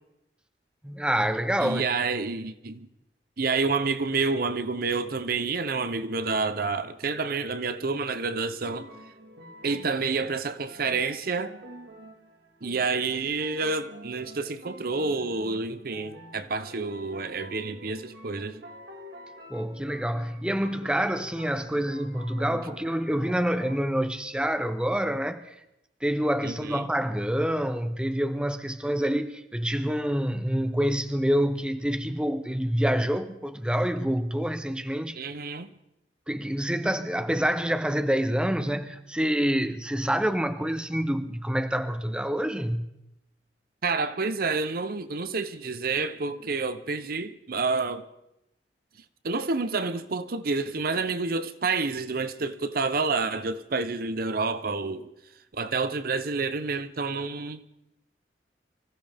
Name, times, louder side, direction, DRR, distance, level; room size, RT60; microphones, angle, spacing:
voice 1, 0.8-1.9 19.5-25.5 26.0-35.2 36.3-42.9, equal, 5° right, 0.7 m, -27 dB
voice 2, 1.6-2.9 3.4-8.9 9.6-11.5 12.6-18.6 26.4-26.9 35.2-35.7 43.8-48.0 49.2-55.1 55.5-57.6, right 4 dB, 55° right, 0.8 m, -29 dB
sound 1, 8.4-23.8, equal, 75° right, 2.1 m, -47 dB
25.5 x 15.0 x 3.5 m
head